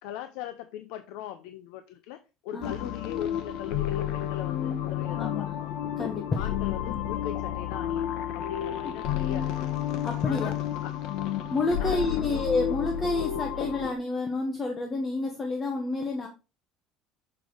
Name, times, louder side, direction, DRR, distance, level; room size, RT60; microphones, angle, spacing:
voice 1, 0.0-2.2 2.4-5.8 6.4-9.5 10.3-10.5 10.8-10.9 11.8-12.4, left 11 dB, 80° left, 9 dB, 0.6 m, -39 dB
voice 2, 2.5-2.9 5.1-5.5 6.0-6.5 6.9-7.0 8.8-8.9 10.0-10.5 11.5-16.3, left 3 dB, 20° left, 3 dB, 0.9 m, -29 dB
sound 1, 2.6-13.9, left 10 dB, 60° left, 1.0 m, -31 dB
6.8 x 4.8 x 3.8 m, 0.30 s
cardioid pair, 165°, 0 cm